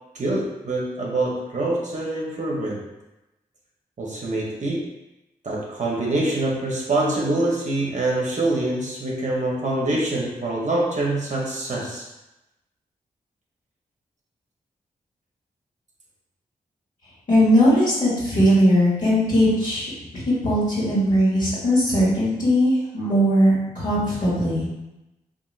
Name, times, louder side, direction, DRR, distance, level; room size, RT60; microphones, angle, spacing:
voice 1, 0.1-2.8 4.0-4.8 5.4-12.1, right 2 dB, 50° right, -3 dB, 0.8 m, -25 dB
voice 2, 17.3-24.7, equal, 60° left, -10 dB, 1.2 m, -19 dB
2.9 x 2.5 x 2.4 m, 0.96 s
supercardioid pair, 40°, 15 cm